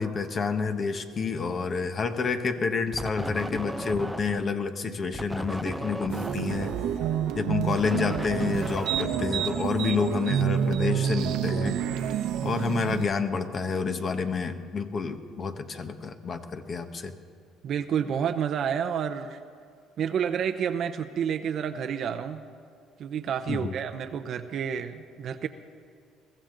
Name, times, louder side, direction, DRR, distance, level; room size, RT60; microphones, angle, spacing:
voice 1, 0.0-6.7 7.3-11.8 12.4-17.1 23.5-23.7, left 5 dB, 40° left, 8 dB, 1.1 m, -29 dB
sound 1, 2.9-4.6 5.1-10.3, right 1 dB, 5° right, 0.5 m, -36 dB
sound 2, 6.1-13.1, right 9 dB, 80° right, 1.0 m, -28 dB
voice 2, 17.6-19.4 20.0-22.4 23.0-25.5, right 8 dB, 55° right, 7 dB, 0.7 m, -29 dB
22.5 x 14.5 x 3.9 m, 2.4 s
cardioid pair, 105°, 0 cm